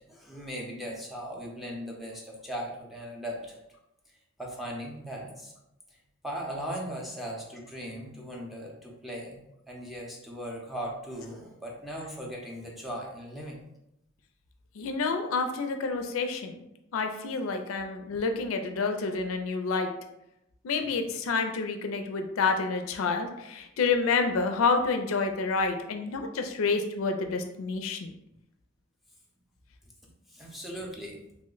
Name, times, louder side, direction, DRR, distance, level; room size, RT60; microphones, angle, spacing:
voice 1, 0.1-3.6 4.4-5.5 5.9-6.0 6.2-13.6 30.3-31.2, equal, ahead, -3 dB, 0.5 m, -38 dB
voice 2, 14.8-16.6 16.9-19.9 20.6-28.1, left 4 dB, 90° left, 6 dB, 0.4 m, -28 dB
2.9 x 2.1 x 3.8 m, 0.86 s
head